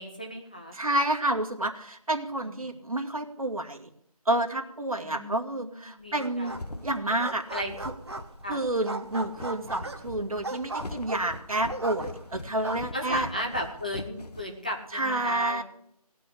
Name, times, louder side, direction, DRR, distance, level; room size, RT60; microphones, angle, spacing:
voice 1, 0.0-0.8 2.4-2.6 5.0-6.5 7.5-7.7 8.4-8.6 12.9-15.6, equal, 15° left, 1 dB, 0.8 m, -35 dB
voice 2, 0.7-3.9 4.3-6.5 6.8-7.4 8.5-13.3 14.9-15.6, right 1 dB, 65° right, 3 dB, 2.1 m, -29 dB
sound 1, 6.1-15.0, left 2 dB, 85° left, 1.3 m, -43 dB
sound 2, 6.2-6.8 7.1-8.5 8.8-12.4 12.6-13.4, right 2 dB, 45° right, 1.2 m, -37 dB
18.0 x 6.2 x 10.0 m, 0.72 s
figure-of-eight pair, 175°, 20 cm